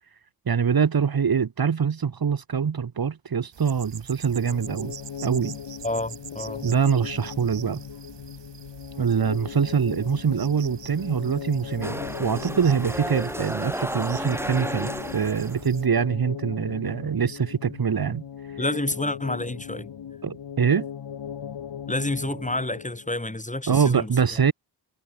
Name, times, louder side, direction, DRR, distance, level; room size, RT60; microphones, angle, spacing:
voice 1, 0.4-4.9 5.2-5.6 6.6-7.8 9.0-18.2 20.2-20.9 23.7-24.5, right 6 dB, 60° right, 1.6 m, -24 dB
sound 1, 3.5-15.9, right 8 dB, 90° right, 4.1 m, -45 dB
sound 2, 4.4-23.2, left 8 dB, 90° left, 3.4 m, -38 dB
voice 2, 5.8-6.6 18.6-19.9 21.9-24.1, left 1 dB, 20° left, 5.0 m, -29 dB
sound 3, 11.8-15.6, equal, 5° right, 7.8 m, -32 dB
cardioid pair, 50°, 41 cm